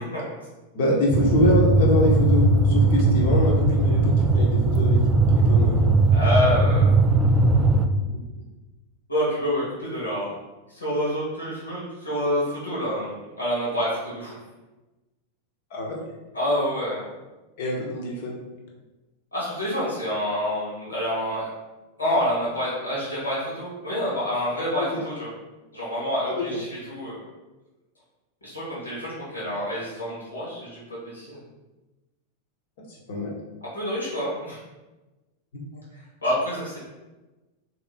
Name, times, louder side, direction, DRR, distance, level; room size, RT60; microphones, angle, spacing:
voice 1, 0.7-5.0 5.3-5.9 15.7-15.9 17.6-18.4 24.8-25.0 26.3-26.6 32.9-33.3 35.5-35.8, left 1 dB, 55° left, -1 dB, 0.9 m, -25 dB
sound 1, 1.1-7.9, right 2 dB, 15° right, 0.4 m, -19 dB
voice 2, 6.1-6.9 9.1-10.3 10.7-14.4 16.3-17.1 19.3-21.5 22.0-25.3 25.7-27.1 28.4-31.4 33.7-34.6 36.2-36.8, equal, 75° left, -7 dB, 1.5 m, -27 dB
3.5 x 3.0 x 3.5 m, 1.1 s
figure-of-eight pair, 90°, 0 cm